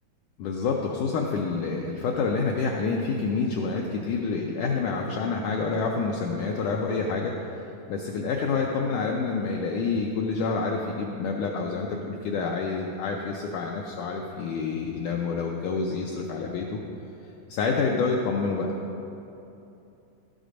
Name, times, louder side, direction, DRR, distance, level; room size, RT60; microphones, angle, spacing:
voice 1, 0.4-7.3 7.9-16.8 17.5-18.7, left 4 dB, 80° left, 0 dB, 1.8 m, -28 dB
12.5 x 6.6 x 5.0 m, 2.9 s
omnidirectional pair, 4.2 m